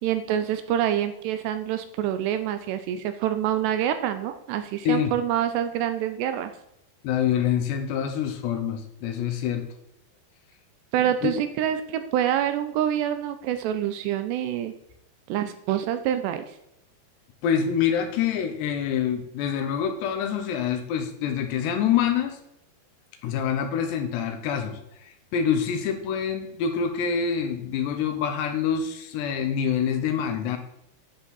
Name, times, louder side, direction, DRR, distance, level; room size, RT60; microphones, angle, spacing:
voice 1, 0.0-6.5 10.9-14.7 15.3-16.4, right 10 dB, 80° right, 9 dB, 2.6 m, -26 dB
voice 2, 7.0-9.7 11.2-11.3 17.4-22.4 23.2-30.6, left 8 dB, 75° left, 7 dB, 3.0 m, -26 dB
10.0 x 7.7 x 4.1 m, 0.82 s
omnidirectional pair, 5.2 m